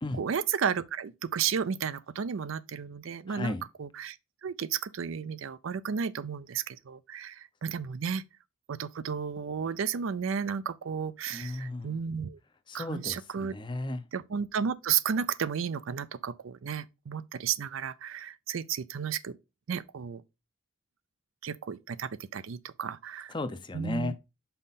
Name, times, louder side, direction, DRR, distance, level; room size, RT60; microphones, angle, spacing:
voice 1, 0.2-4.2 4.4-8.2 8.7-12.4 12.7-13.5 14.1-19.4 19.7-20.2 21.4-23.3 23.7-24.1, right 7 dB, 80° right, 0.5 m, -33 dB
voice 2, 3.3-3.6 11.3-12.0 12.7-14.1 23.3-24.2, left 2 dB, 25° left, 0.5 m, -35 dB
5.7 x 5.0 x 4.1 m
head